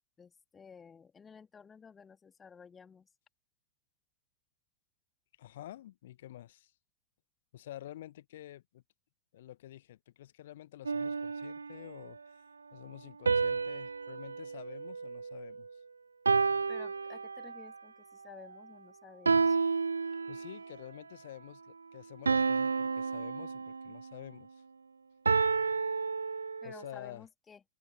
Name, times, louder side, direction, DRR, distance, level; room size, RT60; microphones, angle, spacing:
voice 1, 0.2-3.1 16.7-19.6 26.6-27.6, left 6 dB, 20° left, 2.4 m, -54 dB
voice 2, 5.4-6.7 7.5-8.8 9.3-12.2 12.7-15.8 20.3-24.6 26.6-27.2, left 13 dB, 55° left, 0.8 m, -49 dB
sound 1, 10.9-12.1 13.3-15.7 16.3-17.7 19.3-20.7 22.3-24.1 25.3-26.9, right 4 dB, 75° right, 0.4 m, -31 dB
open air
figure-of-eight pair, 90°, 0 cm